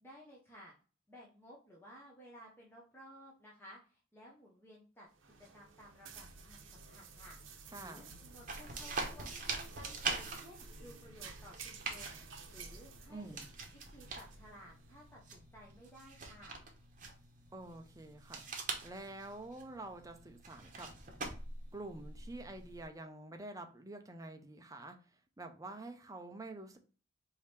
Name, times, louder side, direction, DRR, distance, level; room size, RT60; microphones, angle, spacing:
voice 1, 0.0-0.7 1.1-5.1 5.5-7.4 7.7-9.4 9.8-12.2 12.5-13.4 13.7-16.6, equal, 10° left, 0.9 m, -56 dB
sound 1, 5.1-15.1, right 4 dB, 80° right, 0.8 m, -53 dB
voice 2, 7.7-8.2 13.1-13.5 17.5-20.9 21.7-25.0 25.4-26.8, right 2 dB, 15° right, 0.6 m, -48 dB
sound 2, 8.5-22.9, right 4 dB, 45° right, 0.9 m, -44 dB
4.8 x 2.8 x 3.3 m
head